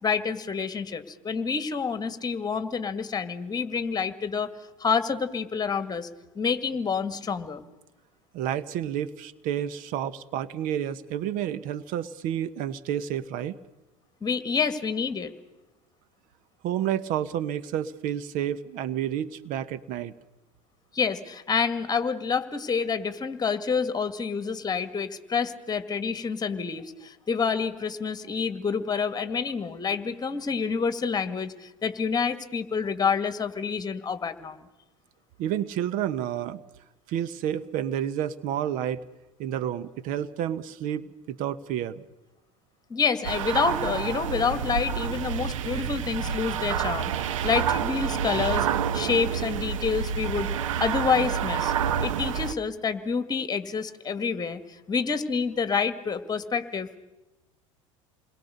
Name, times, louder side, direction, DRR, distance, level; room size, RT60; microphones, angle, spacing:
voice 1, 0.0-4.5 4.8-6.1 6.4-7.6 14.2-15.3 20.9-34.6 42.9-48.7 48.9-50.5 50.8-51.7 52.0-57.0, left 5 dB, 25° left, 12 dB, 2.0 m, -28 dB
voice 2, 8.3-13.6 16.6-20.1 35.4-36.6 37.1-39.0 39.4-42.0, right 10 dB, 55° right, 15 dB, 1.1 m, -30 dB
sound 1, 43.2-52.5, right 8 dB, 75° right, 1.0 m, -28 dB
28.5 x 21.5 x 6.7 m, 1.0 s
hypercardioid pair, 75°, 17 cm